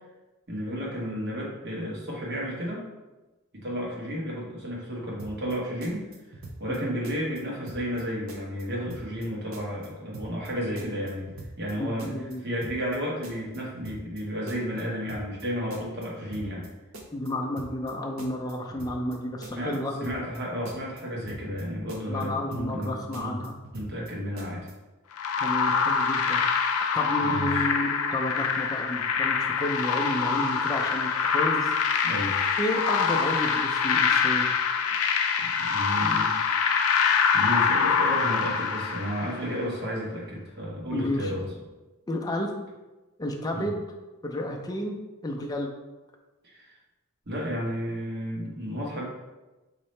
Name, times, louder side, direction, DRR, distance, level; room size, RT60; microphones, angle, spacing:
voice 1, 0.5-2.9 3.5-6.0 6.6-11.3 11.6-12.1 12.4-16.7 19.5-23.4 23.7-24.7 27.2-27.7 32.0-32.3 35.4-36.9 37.3-41.5 43.5-43.7 46.4-46.7 47.3-49.1, equal, 50° right, -4 dB, 1.2 m, -32 dB
sound 1, 5.2-5.6 5.8-6.8 7.0-7.4 7.7-8.0 8.3-9.3 9.5-9.9 10.1-10.5 10.8-11.7 12.0-12.4 12.6-13.0 13.2-14.2 14.5-14.8 15.1-15.4 15.7-16.7 16.9-17.3 17.6-17.9 18.2-19.2 19.4-19.8 20.0-20.4 20.7-21.6 21.9-22.3 22.5-22.9 23.1-24.1 24.4-24.7, right 2 dB, 65° right, 0.7 m, -43 dB
voice 2, 11.8-12.4 17.1-20.2 22.1-23.5 25.4-31.7 32.6-34.5 40.9-41.3 42.1-42.5 43.2-43.8 44.2-45.0 45.2-45.7, left 1 dB, 15° left, 1 dB, 0.4 m, -31 dB
sound 2, 25.2-39.5, left 6 dB, 80° left, 0.5 m, -25 dB
5.2 x 2.8 x 3.2 m, 1.1 s
head